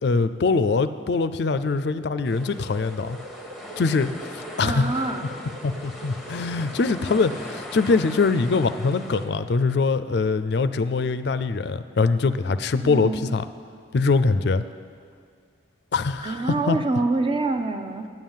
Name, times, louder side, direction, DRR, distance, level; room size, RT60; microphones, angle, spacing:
voice 1, 0.0-3.2 3.8-5.1 5.6-13.5 13.9-14.6 15.9-16.8, left 4 dB, 60° left, 13 dB, 0.4 m, -23 dB
sound 1, 0.9-7.4, right 1 dB, 70° right, 1.2 m, -44 dB
sound 2, 2.2-9.3, left 1 dB, ahead, 1.0 m, -40 dB
voice 2, 4.6-5.3 12.8-13.4 16.2-18.1, right 3 dB, 25° right, 7 dB, 0.6 m, -26 dB
9.4 x 9.3 x 7.3 m, 2.1 s
head